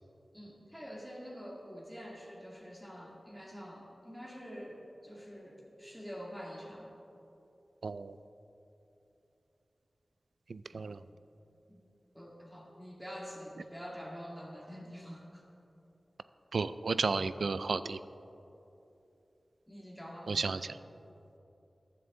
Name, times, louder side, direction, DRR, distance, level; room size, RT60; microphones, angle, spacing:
voice 1, 0.3-6.9 10.7-10.8 11.7-11.8 12.1-15.4 19.7-20.6, equal, 5° right, -3 dB, 2.0 m, -46 dB
voice 2, 7.8-8.2 10.5-11.0 16.5-18.0 20.3-20.8, right 4 dB, 85° right, 14 dB, 0.3 m, -33 dB
14.5 x 10.5 x 3.8 m, 3.0 s
wide cardioid pair, 50°, 0 cm